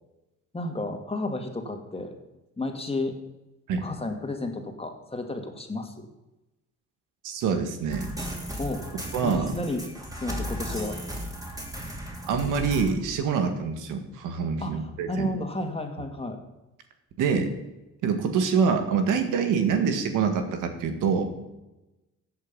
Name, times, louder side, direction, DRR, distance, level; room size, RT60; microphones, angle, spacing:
voice 1, 0.5-2.2 2.6-3.1 3.7-6.1 8.6-8.8 9.2-9.8 10.2-11.0 14.6-16.4, left 2 dB, 20° left, 4 dB, 2.2 m, -32 dB
voice 2, 7.2-8.1 9.1-9.5 12.3-15.3 17.2-17.5 18.0-21.3, right 6 dB, 90° right, 7 dB, 1.8 m, -25 dB
sound 1, 7.9-12.9, equal, 10° right, 3.5 m, -35 dB
15.0 x 8.1 x 5.4 m, 1.0 s
cardioid pair, 90°, 30 cm